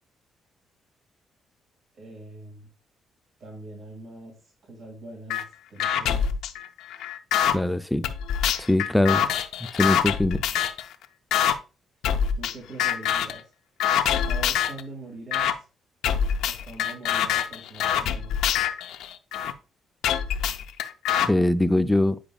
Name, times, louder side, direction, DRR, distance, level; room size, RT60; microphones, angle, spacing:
voice 1, 1.9-2.7 3.4-4.4 4.7-6.4 9.2-9.4 12.4-13.5 14.2-15.6 16.5-18.5, right 2 dB, 60° right, 2.1 m, -42 dB
sound 1, 5.3-5.4 5.8-7.5 8.0-10.9 11.3-11.5 12.0-12.5 12.8-13.4 13.8-14.8 15.3-15.5 16.0-19.5 20.0-21.3, left 9 dB, 85° left, 0.5 m, -25 dB
voice 2, 7.5-8.1 8.7-9.2 9.8-10.4 21.3-22.2, left 1 dB, 5° left, 0.4 m, -22 dB
8.7 x 5.0 x 2.3 m
cardioid pair, 90°, 0 cm